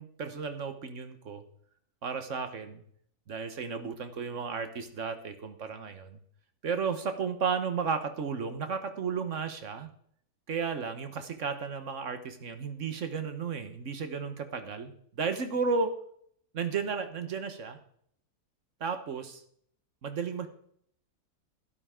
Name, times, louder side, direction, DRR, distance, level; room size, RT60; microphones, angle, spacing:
voice 1, 0.0-1.4 2.0-2.8 3.3-6.2 6.6-9.9 10.5-16.0 16.5-17.8 18.8-19.4 20.0-20.5, right 5 dB, 55° right, 8 dB, 1.5 m, -33 dB
12.5 x 12.0 x 3.7 m, 0.64 s
omnidirectional pair, 1.7 m